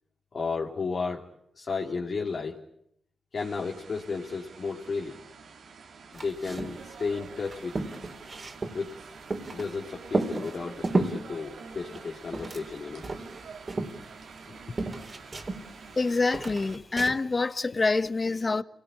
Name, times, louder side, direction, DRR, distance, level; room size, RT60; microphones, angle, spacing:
voice 1, 0.3-1.3 1.5-2.6 3.3-5.2 6.1-7.7 8.7-8.9 9.5-13.0 14.5-14.6, left 4 dB, 60° left, 2.9 m, -33 dB
sound 1, 3.3-16.8, right 5 dB, 75° right, 2.8 m, -47 dB
sound 2, 6.1-6.8 7.1-7.2 7.4-9.7 10.1-11.2 11.8-12.8 13.0-14.5 14.8-16.0 16.3-17.2, right 2 dB, 40° right, 3.6 m, -32 dB
voice 2, 16.0-18.6, left 3 dB, 40° left, 1.3 m, -26 dB
28.0 x 19.0 x 9.9 m
supercardioid pair, 45°, 0 cm